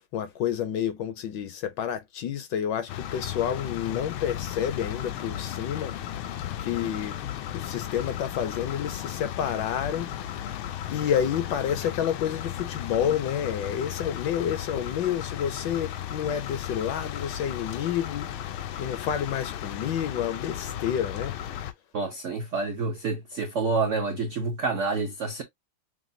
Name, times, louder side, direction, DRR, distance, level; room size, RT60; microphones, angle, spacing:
voice 1, 0.0-5.9 6.6-7.2 7.5-10.1 10.9-21.4, left 9 dB, 75° left, 1.1 m, -29 dB
sound 1, 2.9-21.7, left 11 dB, 90° left, 1.5 m, -35 dB
voice 2, 21.9-25.4, right 4 dB, 75° right, 0.6 m, -28 dB
6.2 x 2.2 x 2.5 m
omnidirectional pair, 2.2 m